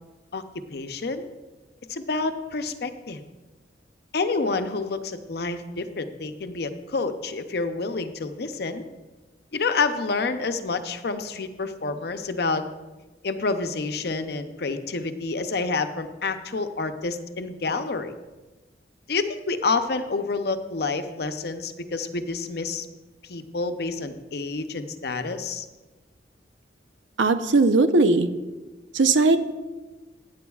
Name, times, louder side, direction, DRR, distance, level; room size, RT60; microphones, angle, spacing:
voice 1, 0.7-1.2 1.9-3.2 4.1-8.8 9.5-12.6 13.2-18.1 19.1-22.9 23.3-25.7, left 3 dB, 60° left, 8 dB, 0.6 m, -28 dB
voice 2, 27.2-28.3 28.9-29.4, right 3 dB, 90° right, 10 dB, 0.7 m, -18 dB
16.0 x 9.0 x 2.4 m, 1.2 s
head